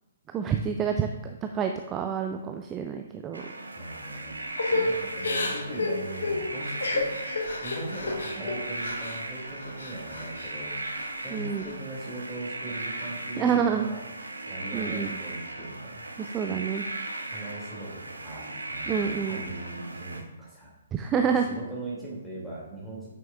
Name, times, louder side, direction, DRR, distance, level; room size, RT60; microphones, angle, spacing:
voice 1, 0.3-3.5 11.3-11.7 13.4-13.9 14.7-15.1 16.2-16.8 18.9-19.4 20.9-21.5, right 7 dB, 15° right, 5 dB, 0.3 m, -28 dB
sound 1, 3.3-20.2, right 2 dB, 75° right, 0.7 m, -37 dB
voice 2, 3.8-4.4 4.7-7.2 7.6-10.8 11.2-14.0 14.5-16.1 17.2-20.7 21.3-23.1, right 2 dB, ahead, -7 dB, 2.4 m, -39 dB
Crying sobbing / Breathing, 4.6-9.2 9.6-10.5 10.9-11.7, left 2 dB, 65° left, 1.1 m, -31 dB
8.7 x 6.1 x 2.3 m, 1.0 s
figure-of-eight pair, 125°, 0 cm